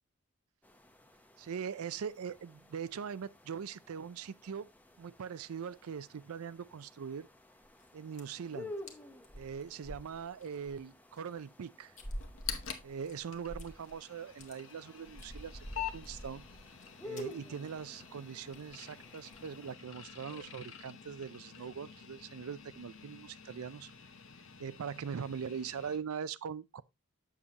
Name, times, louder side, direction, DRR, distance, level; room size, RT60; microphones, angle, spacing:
sound 1, 0.6-19.7, left 1 dB, 10° left, 0.7 m, -52 dB
voice 1, 1.4-4.7 5.0-7.3 7.9-8.7 9.3-11.9 12.8-16.4 17.0-23.9 24.6-26.8, right 7 dB, 90° right, 0.4 m, -41 dB
sound 2, 7.6-7.9 8.1-8.5 8.9-9.0 9.2-10.8 11.1-11.2 12.0-14.0 14.2-14.5 15.1-16.9 17.1-17.3 17.6-17.8 18.1-18.2 18.5-18.8 19.2-19.4, equal, 35° left, 1.1 m, -47 dB
sound 3, 12.2-26.0, left 9 dB, 70° left, 1.0 m, -48 dB
7.4 x 6.7 x 2.8 m
head